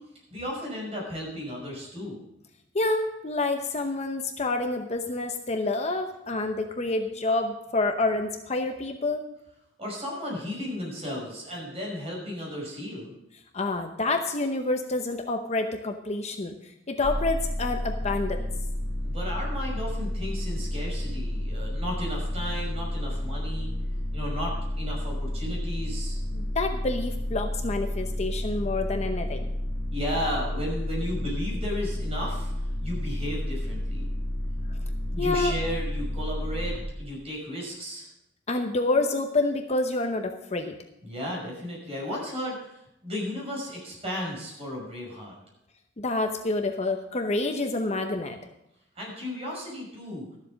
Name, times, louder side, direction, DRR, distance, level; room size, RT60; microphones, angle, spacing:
voice 1, 0.3-2.2 9.8-13.1 19.0-23.7 24.1-26.2 29.9-34.1 35.1-38.1 41.0-45.3 48.9-50.3, left 1 dB, 30° right, -2 dB, 5.6 m, -34 dB
voice 2, 2.7-9.2 13.5-18.5 26.3-29.5 35.2-35.6 38.5-40.8 46.0-48.4, left 2 dB, 35° left, 6 dB, 0.8 m, -28 dB
sound 1, 17.0-36.8, left 1 dB, 15° left, 2.9 m, -31 dB
13.0 x 7.4 x 6.3 m, 0.85 s
head